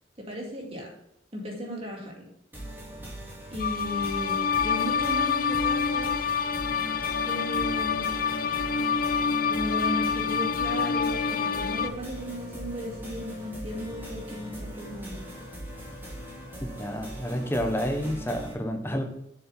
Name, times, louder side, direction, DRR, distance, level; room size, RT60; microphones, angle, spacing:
voice 1, 0.2-0.9 1.3-2.3 3.5-6.2 7.3-8.1 9.5-15.2, equal, 35° right, -1 dB, 2.2 m, -36 dB
sound 1, 2.5-18.5, equal, 10° right, 2.4 m, -40 dB
sound 2, 3.6-11.9, left 6 dB, 50° left, 0.5 m, -27 dB
voice 2, 16.6-19.0, equal, 15° left, 5 dB, 0.9 m, -29 dB
7.3 x 6.9 x 4.0 m, 0.78 s
head